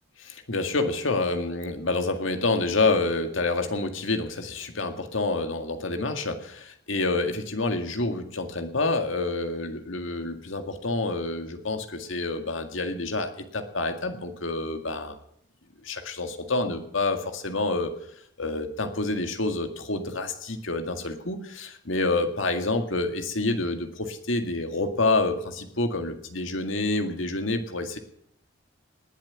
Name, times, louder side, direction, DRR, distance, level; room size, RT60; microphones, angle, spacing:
voice 1, 0.2-15.2 15.8-17.9 18.4-28.0, left 2 dB, 80° left, 6 dB, 1.9 m, -28 dB
19.5 x 7.5 x 9.6 m, 0.72 s
head